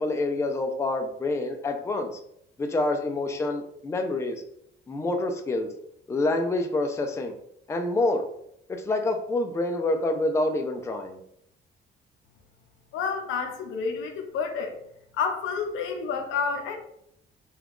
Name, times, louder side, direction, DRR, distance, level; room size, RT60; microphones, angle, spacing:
voice 1, 0.0-2.1 2.6-4.4 4.9-5.7 6.1-7.4 7.7-8.3 8.7-11.2, left 2 dB, 15° left, 5 dB, 0.3 m, -27 dB
voice 2, 12.9-14.8 15.1-16.8, left 5 dB, 90° left, 4 dB, 0.6 m, -29 dB
2.4 x 2.3 x 3.4 m, 0.73 s
cardioid pair, 90°, 20 cm